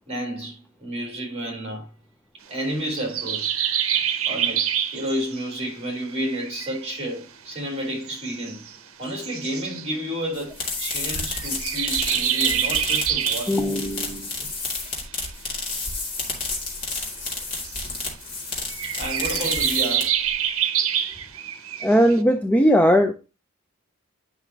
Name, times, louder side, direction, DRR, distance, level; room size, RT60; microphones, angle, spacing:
voice 1, 0.1-1.9 2.5-3.5 4.3-8.7 9.0-13.7 14.3-14.4 18.8-20.2, equal, 30° right, 3.5 m, -31 dB
sound 1, 2.9-5.4 6.0-6.8 8.1-8.7 9.1-9.9 10.8-13.6 15.7-15.8 17.4-17.8 18.7-22.2, right 9 dB, 75° right, 0.8 m, -26 dB
sound 2, 10.3-20.3, left 3 dB, 40° left, 2.5 m, -31 dB
voice 2, 13.5-14.3 21.8-23.1, equal, 5° left, 0.5 m, -19 dB
9.5 x 5.8 x 2.9 m
head